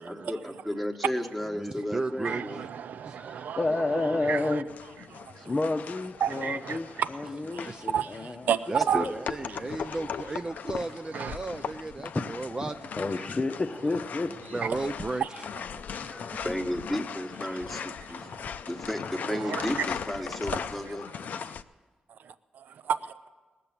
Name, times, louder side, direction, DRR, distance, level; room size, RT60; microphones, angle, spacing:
voice 1, 0.0-2.6 8.9-9.1 16.4-18.2 18.6-21.1, equal, ahead, 1.2 m, -33 dB
voice 2, 1.6-2.7 3.0-3.6 7.5-7.8 8.7-12.8 14.5-15.5 16.0-16.4, right 3 dB, 25° right, 0.4 m, -35 dB
voice 3, 2.2-4.6 5.1-5.5 6.2-7.1 7.3-9.1 11.1-11.4 14.6-14.7 15.2-15.3 15.7-16.1 18.2-18.4 19.3-19.7 21.5-21.6 22.2-23.1, right 8 dB, 85° right, 0.5 m, -32 dB
voice 4, 3.6-4.7 5.4-8.4 9.0-9.1 12.6-12.7 13.0-14.6, left 2 dB, 25° left, 0.7 m, -30 dB
sound 1, 4.7-21.6, left 7 dB, 75° left, 0.5 m, -39 dB
19.0 x 6.8 x 8.7 m
cardioid pair, 100°, 3 cm